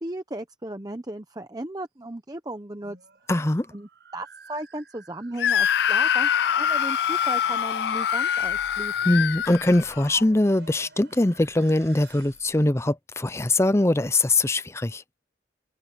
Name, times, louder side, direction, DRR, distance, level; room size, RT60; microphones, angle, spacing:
voice 1, 0.0-3.0 3.7-9.2, right 1 dB, 20° right, 0.9 m, -36 dB
sound 1, 2.6-12.7, right 5 dB, 65° right, 5.3 m, -50 dB
voice 2, 3.3-3.7 9.0-15.0, left 2 dB, 15° left, 0.6 m, -22 dB
Screaming, 5.4-10.2, left 9 dB, 60° left, 0.3 m, -24 dB
head